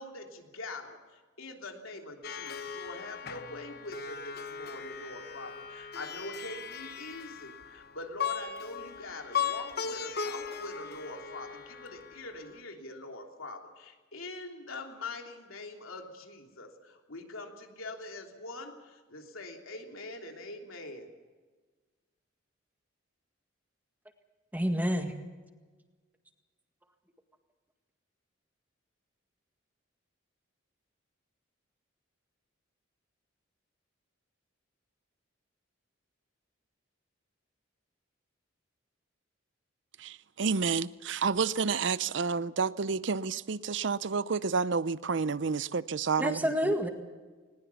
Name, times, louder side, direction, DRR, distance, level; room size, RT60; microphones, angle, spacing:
voice 1, 0.0-21.1, left 2 dB, 90° left, 3.2 m, -44 dB
Plucked string instrument, 2.2-12.6, left 7 dB, 50° left, 1.1 m, -38 dB
voice 2, 24.5-25.1 46.2-46.9, equal, 10° right, 1.8 m, -28 dB
voice 3, 40.0-46.7, right 5 dB, 60° right, 0.6 m, -30 dB
20.5 x 19.5 x 7.1 m
head